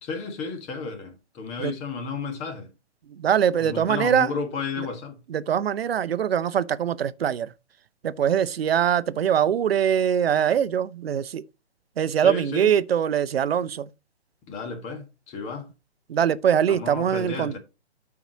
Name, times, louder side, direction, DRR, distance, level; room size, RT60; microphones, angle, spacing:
voice 1, 0.0-2.7 3.6-5.2 12.2-12.7 14.5-15.7 16.7-17.6, left 4 dB, 20° left, 1.6 m, -32 dB
voice 2, 3.1-4.3 4.8-4.9 5.3-7.5 8.0-11.4 12.0-13.9 16.1-17.6, right 9 dB, 60° right, 0.7 m, -23 dB
13.0 x 4.8 x 2.9 m
figure-of-eight pair, 140°, 34 cm